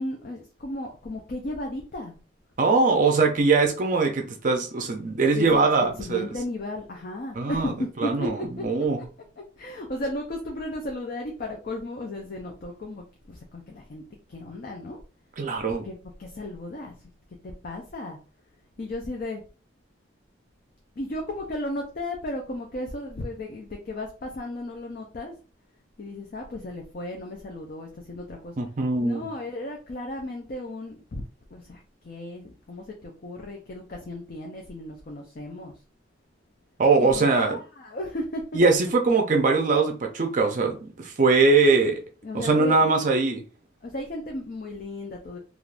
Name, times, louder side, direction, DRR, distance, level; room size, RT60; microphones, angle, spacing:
voice 1, 0.0-2.2 5.3-8.3 8.6-8.7 9.0-9.1 9.6-14.0 14.3-15.0 15.8-16.9 17.4-18.2 18.8-19.4 21.0-25.3 26.0-28.5 29.0-31.2 31.5-35.7 37.0-38.4 41.7-41.8 42.2-43.0 43.8-45.4, left 1 dB, 45° left, 0.5 m, -35 dB
voice 2, 2.6-6.3 7.3-7.7 8.0-8.4 8.6-9.0 15.4-15.9 28.6-29.3 36.8-37.6 38.5-42.0 42.3-43.4, right 3 dB, 40° right, 0.5 m, -21 dB
3.4 x 2.4 x 2.4 m
head